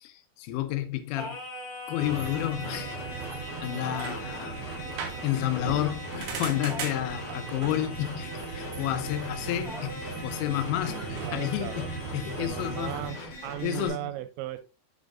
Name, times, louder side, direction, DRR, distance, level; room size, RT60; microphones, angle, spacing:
voice 1, 0.0-1.4 1.9-3.0 3.6-13.3 13.6-14.0, left 14 dB, 90° left, 3.1 m, -31 dB
Singing, 1.1-13.2, left 1 dB, 30° left, 2.9 m, -42 dB
sound 1, 2.0-13.9, equal, 45° left, 1.3 m, -42 dB
sound 2, 2.0-13.1, right 5 dB, 70° right, 1.9 m, -38 dB
voice 2, 11.2-11.9 12.4-14.6, right 14 dB, 90° right, 2.9 m, -36 dB
7.4 x 6.3 x 2.4 m
omnidirectional pair, 5.2 m